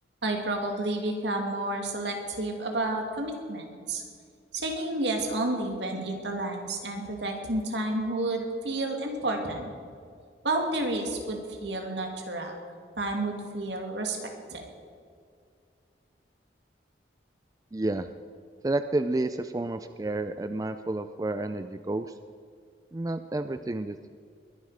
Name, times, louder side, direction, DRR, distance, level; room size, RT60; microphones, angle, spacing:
voice 1, 0.2-4.0 4.5-9.7 10.4-12.6 13.0-14.2 14.5-14.7, right 2 dB, 75° right, 2 dB, 2.4 m, -30 dB
voice 2, 17.7-18.1 18.6-22.1 22.9-24.1, right 2 dB, 20° right, 10 dB, 0.3 m, -30 dB
21.5 x 10.5 x 5.0 m, 2.2 s
head